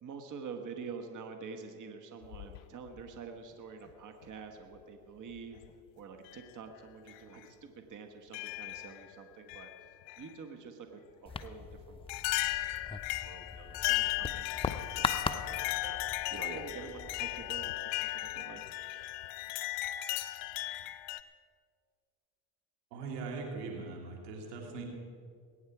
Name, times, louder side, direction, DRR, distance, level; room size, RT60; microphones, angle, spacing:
voice 1, 0.0-5.6 6.0-9.7 10.2-12.0 13.2-18.6, right 5 dB, 40° right, 5 dB, 1.5 m, -47 dB
sound 1, 2.2-3.1 4.2-4.3 5.4-5.7 6.3-6.4 7.1-7.2 8.3-9.0 9.5-10.3 11.4-11.5 12.1-21.2, left 17 dB, 70° left, 0.7 m, -36 dB
sound 2, 11.3-17.8, left 4 dB, 10° left, 0.6 m, -40 dB
voice 2, 22.9-24.9, right 4 dB, 90° right, 1 dB, 2.8 m, -40 dB
21.0 x 9.5 x 4.8 m, 2.3 s
supercardioid pair, 85°, 46 cm